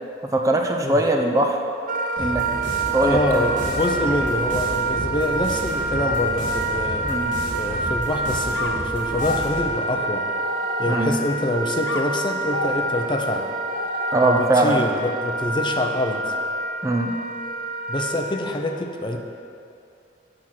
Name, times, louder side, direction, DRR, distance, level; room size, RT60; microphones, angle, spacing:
voice 1, 0.3-1.6 2.2-2.4 2.9-3.5 7.1-7.3 10.9-11.1 14.1-14.8 16.8-17.1, right 2 dB, 20° right, 2 dB, 0.5 m, -21 dB
Wind instrument woodwind instrument, 1.9-18.4, right 2 dB, 50° right, 0.8 m, -27 dB
sound 1, 2.2-9.8, left 1 dB, 45° left, 2.4 m, -32 dB
voice 2, 3.0-7.1 7.5-10.3 10.8-13.5 14.2-16.3 17.9-19.2, left 1 dB, 25° left, 4 dB, 0.6 m, -25 dB
sound 2, 8.5-11.4 11.9-14.7, left 2 dB, 75° left, 0.6 m, -33 dB
8.7 x 6.1 x 5.8 m, 2.7 s
head